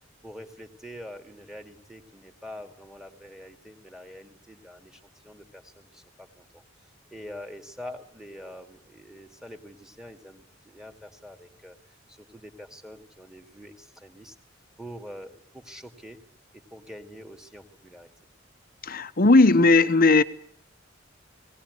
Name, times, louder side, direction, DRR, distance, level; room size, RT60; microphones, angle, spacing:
voice 1, 0.2-6.6 7.1-11.8 12.1-14.4 14.8-16.2 16.7-18.1, equal, 5° right, 2.3 m, -45 dB
voice 2, 18.8-20.2, left 3 dB, 50° left, 1.1 m, -17 dB
19.0 x 19.0 x 9.7 m
head